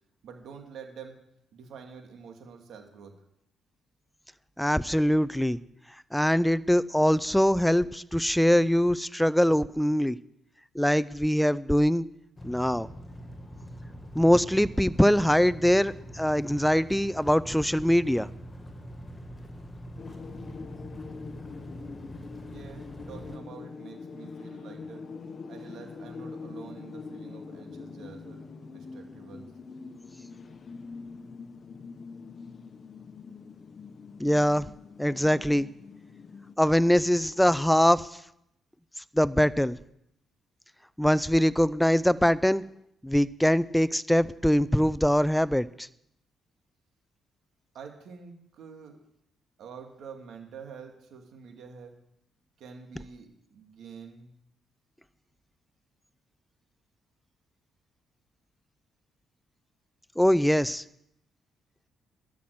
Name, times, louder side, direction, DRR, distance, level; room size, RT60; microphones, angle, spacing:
voice 1, 0.2-1.2 1.5-3.1 22.5-25.0 25.5-28.4 28.7-29.5 47.7-49.0 49.6-51.9 52.6-54.3, right 6 dB, 70° right, 3 dB, 2.3 m, -47 dB
voice 2, 4.6-5.6 6.1-10.2 10.7-12.0 12.4-12.9 14.1-18.3 34.2-34.7 35.0-35.7 36.6-38.1 39.1-39.8 41.0-42.6 43.0-45.9 60.2-60.8, equal, 5° left, 16 dB, 0.5 m, -23 dB
sound 1, 12.4-23.4, equal, 20° left, 2.0 m, -44 dB
sound 2, 20.0-36.5, left 4 dB, 45° left, 0.9 m, -44 dB
12.5 x 6.0 x 7.8 m, 0.76 s
cardioid pair, 90°, 0 cm